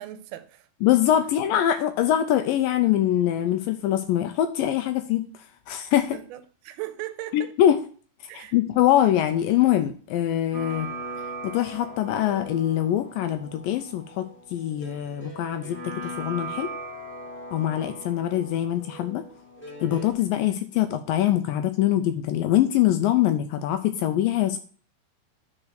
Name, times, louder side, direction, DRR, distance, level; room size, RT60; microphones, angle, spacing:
voice 1, 0.0-0.7 6.0-7.5 8.3-8.6, right 15 dB, 80° right, 2.6 m, -38 dB
voice 2, 0.8-5.3 5.7-6.2 7.3-7.8 8.3-10.9 11.4-14.3 14.5-16.7 17.5-19.2 19.8-24.6, left 12 dB, 80° left, 2.1 m, -23 dB
sound 1, 10.5-20.1, right 2 dB, 5° left, 0.8 m, -39 dB
9.9 x 4.3 x 6.4 m
omnidirectional pair, 4.5 m